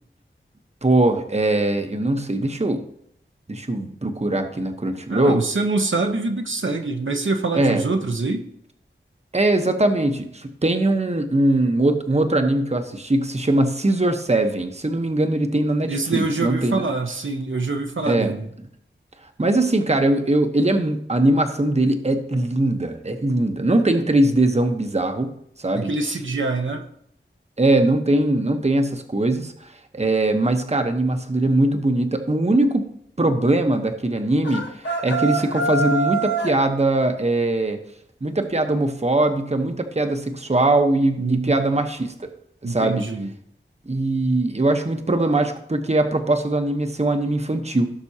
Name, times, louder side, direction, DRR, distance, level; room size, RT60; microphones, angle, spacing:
voice 1, 0.8-2.8 3.5-5.4 7.5-7.8 9.3-16.8 18.0-18.3 19.4-25.3 25.6-25.9 27.6-32.8 33.2-34.6 35.0-37.8 38.2-42.3 42.6-43.0 43.9-47.9, right 2 dB, 30° right, 6 dB, 1.0 m, -21 dB
voice 2, 5.1-8.5 15.9-18.5 25.7-26.8 41.2-41.5 42.6-43.3, right 3 dB, 70° right, 3 dB, 1.0 m, -25 dB
sound 1, 34.4-36.6, right 2 dB, 60° left, 1.2 m, -24 dB
16.5 x 6.1 x 2.8 m, 0.72 s
wide cardioid pair, 50°, 21 cm